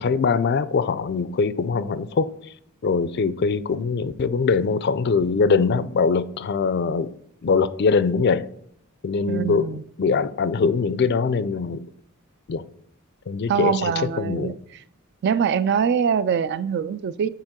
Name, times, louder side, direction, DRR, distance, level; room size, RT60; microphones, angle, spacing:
voice 1, 0.0-2.3 2.8-8.5 9.0-9.7 10.0-11.9 12.5-12.6 13.3-13.9 14.2-14.6, left 5 dB, 50° left, 0.4 m, -22 dB
voice 2, 9.3-9.8 13.5-14.5 15.2-17.3, right 7 dB, 50° right, 0.3 m, -23 dB
8.9 x 4.5 x 3.7 m
head